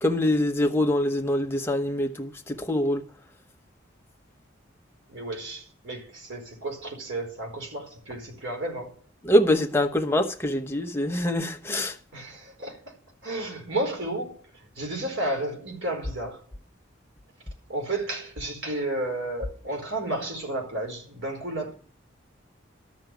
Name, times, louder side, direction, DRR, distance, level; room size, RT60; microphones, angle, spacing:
voice 1, 0.0-3.0 9.2-12.0, left 1 dB, 10° left, 1.0 m, -24 dB
voice 2, 5.1-9.0 12.1-12.9 13.2-14.4 14.7-16.4 17.7-21.7, right 1 dB, 75° right, 4.6 m, -32 dB
13.0 x 6.4 x 9.2 m
head